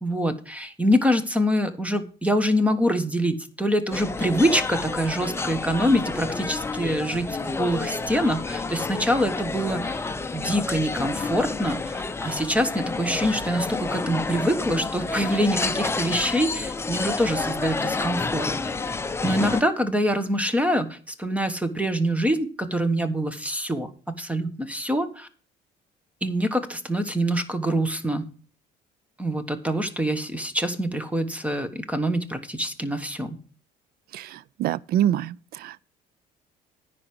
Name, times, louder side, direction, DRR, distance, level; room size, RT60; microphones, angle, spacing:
voice 1, 0.0-18.5 19.2-25.3 26.2-28.3 29.2-33.4, equal, 10° right, 1.2 m, -25 dB
sound 1, 3.9-19.6, left 3 dB, 15° left, 0.7 m, -29 dB
voice 2, 34.1-35.9, right 11 dB, 65° right, 0.4 m, -26 dB
10.0 x 4.8 x 7.7 m
cardioid pair, 110°, 17 cm